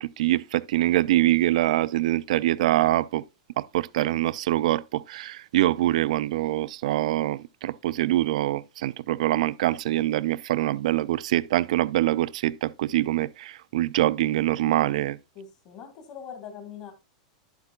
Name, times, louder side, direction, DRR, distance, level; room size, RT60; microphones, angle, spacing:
voice 1, 0.0-3.2 3.6-15.2, right 15 dB, 60° right, 0.4 m, -24 dB
voice 2, 15.3-16.9, left 7 dB, 35° left, 1.7 m, -42 dB
11.0 x 8.1 x 2.3 m
supercardioid pair, 170°, 4 cm